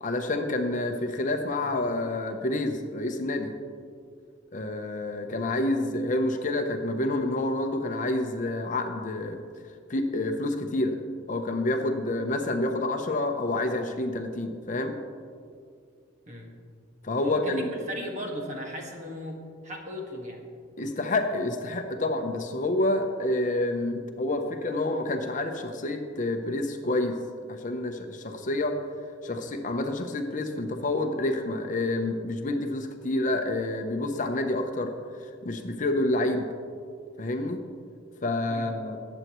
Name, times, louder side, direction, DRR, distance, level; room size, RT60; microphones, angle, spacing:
voice 1, 0.0-3.5 4.5-9.4 9.9-11.0 11.3-15.0 17.0-17.7 20.8-27.2 27.5-28.8 29.2-34.9 35.4-36.5 37.2-37.6 38.2-39.0, left 2 dB, 40° left, 5 dB, 0.7 m, -28 dB
voice 2, 17.2-20.4 38.5-38.7, equal, 35° right, 0 dB, 1.7 m, -36 dB
19.5 x 8.0 x 3.1 m, 2.2 s
head